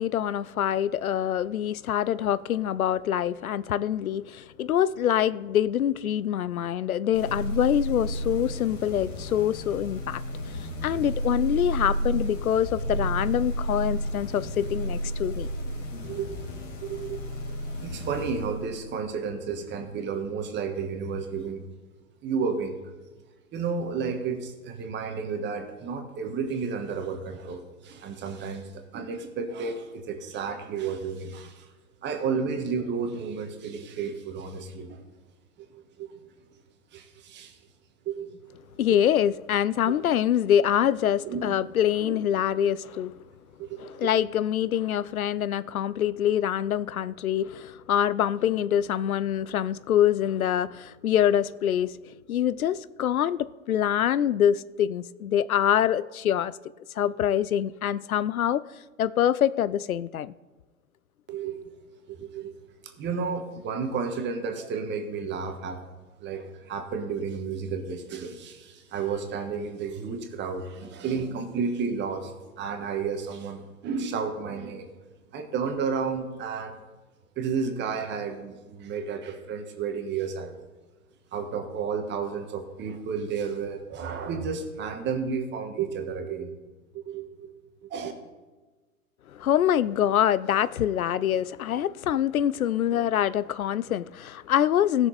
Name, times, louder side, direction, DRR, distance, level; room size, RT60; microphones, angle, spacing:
voice 1, 0.0-10.2 10.8-15.5 38.8-43.1 44.0-56.6 57.0-58.6 59.0-60.3 89.3-95.1, left 10 dB, 80° left, 0.5 m, -25 dB
sound 1, 7.1-19.1, equal, 60° left, 3.0 m, -32 dB
voice 2, 16.0-16.4 16.8-17.4 17.8-21.6 22.2-22.8 23.5-31.7 32.0-35.0 35.6-36.2 36.9-37.6 38.0-38.4 38.9-39.0 39.8-39.9 41.2-41.4 42.0-42.2 43.6-43.8 61.3-61.7 62.1-62.5 62.8-65.9 66.2-74.9 75.3-76.8 77.4-80.7 81.3-86.5 86.9-87.5 87.8-88.1, right 5 dB, 25° right, 1.5 m, -32 dB
17.5 x 6.4 x 4.2 m
figure-of-eight pair, 105°, 42 cm